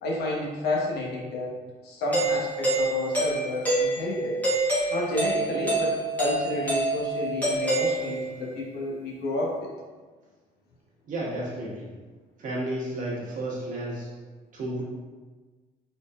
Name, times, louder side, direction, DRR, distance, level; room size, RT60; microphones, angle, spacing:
voice 1, 0.0-4.4 4.9-9.7, left 1 dB, 75° left, -2 dB, 1.0 m, -31 dB
Doorbell, 2.1-8.5, right 2 dB, 10° left, 1.3 m, -27 dB
voice 2, 11.1-11.9 12.4-14.1 14.5-14.8, right 1 dB, 50° right, -6 dB, 1.4 m, -32 dB
4.2 x 4.0 x 2.4 m, 1.3 s
cardioid pair, 110°, 17 cm